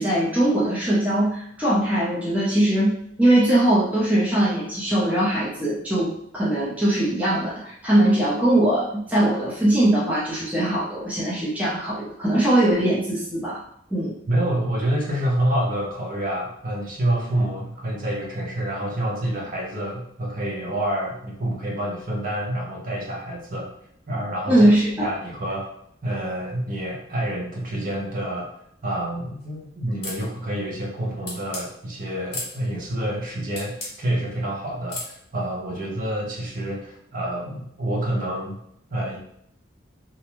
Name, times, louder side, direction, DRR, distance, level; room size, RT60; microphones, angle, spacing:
voice 1, 0.0-13.6 13.9-14.1 24.5-25.1, right 1 dB, 10° right, -8 dB, 0.6 m, -21 dB
voice 2, 14.3-23.7 24.1-24.7 25.0-25.7 26.0-28.5 28.8-38.6 38.9-39.2, right 1 dB, 45° right, -3 dB, 0.8 m, -27 dB
sound 1, 30.0-30.3 31.3-31.7 32.3-32.5 33.6-33.9 34.9-35.1, left 2 dB, 55° left, 1.0 m, -32 dB
2.6 x 2.2 x 2.9 m, 0.71 s
head